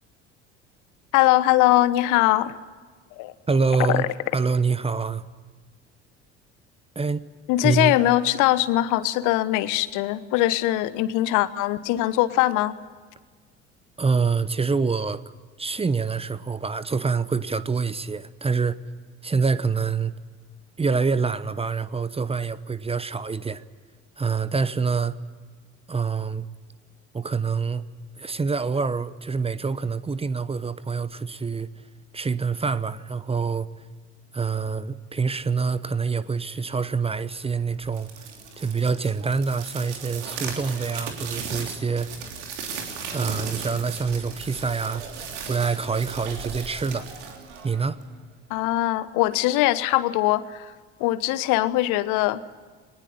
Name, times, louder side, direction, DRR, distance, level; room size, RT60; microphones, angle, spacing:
voice 1, 1.1-2.6 3.2-3.3 3.9-4.1 7.5-12.7 48.5-50.7 51.0-52.4, left 16 dB, 55° left, 1.2 m, -21 dB
voice 2, 3.5-5.2 6.9-7.3 7.6-8.0 14.0-15.2 15.6-18.8 19.2-20.1 20.8-23.6 24.2-25.2 25.9-26.5 27.1-27.8 28.2-31.7 32.1-33.7 34.3-38.3 38.6-42.1 43.1-45.0 45.5-47.1 47.6-48.0, right 5 dB, 15° right, 0.9 m, -26 dB
sound 1, 37.8-48.2, right 6 dB, 70° right, 3.3 m, -36 dB
21.5 x 19.5 x 9.7 m
figure-of-eight pair, 60°, 36 cm